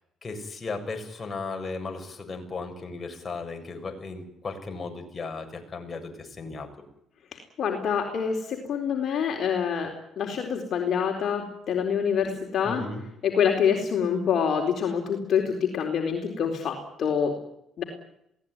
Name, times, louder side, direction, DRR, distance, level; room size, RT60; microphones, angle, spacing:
voice 1, 0.2-6.7 12.6-13.0, left 3 dB, 35° left, 4 dB, 7.2 m, -36 dB
voice 2, 7.6-12.8 13.2-17.3 17.8-17.9, left 7 dB, 60° left, 2 dB, 4.3 m, -26 dB
22.5 x 18.0 x 9.8 m, 0.76 s
supercardioid pair, 65°, 0 cm